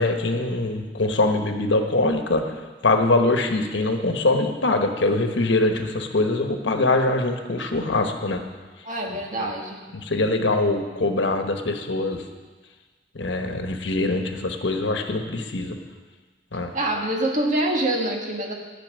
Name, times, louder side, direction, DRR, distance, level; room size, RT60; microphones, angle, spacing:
voice 1, 0.0-2.5 2.8-8.4 9.1-9.5 9.9-12.2 13.1-15.8 16.5-16.7, left 2 dB, 70° left, 5 dB, 1.2 m, -23 dB
voice 2, 8.8-9.8 16.7-18.5, right 1 dB, 40° right, 0 dB, 1.8 m, -25 dB
12.5 x 5.9 x 9.0 m, 1.3 s
head